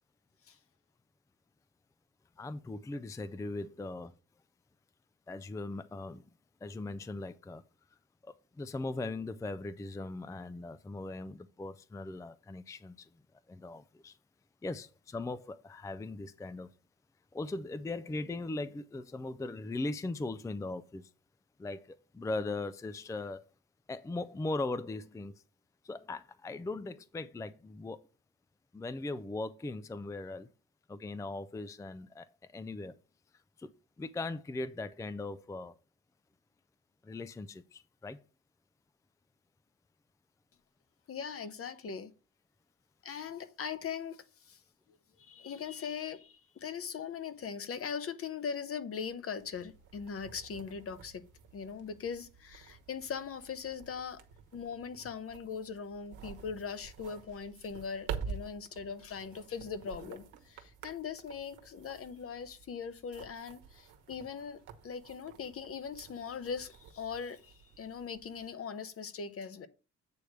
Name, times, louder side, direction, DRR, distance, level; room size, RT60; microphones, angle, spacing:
voice 1, 2.4-4.1 5.3-6.2 6.6-7.6 8.2-13.1 13.5-14.2 14.6-16.7 17.3-21.1 21.6-23.4 23.9-25.4 25.8-28.0 28.7-30.5 30.9-33.0 33.6-33.7 34.0-35.8 37.0-38.2, left 2 dB, 10° left, 0.4 m, -39 dB
voice 2, 41.1-42.1 43.0-44.6 45.2-51.2 51.5-54.2 54.5-69.7, left 6 dB, 50° left, 0.9 m, -40 dB
sound 1, 49.4-68.5, right 6 dB, 85° right, 1.2 m, -49 dB
8.5 x 3.3 x 6.3 m
cardioid pair, 90°, 30 cm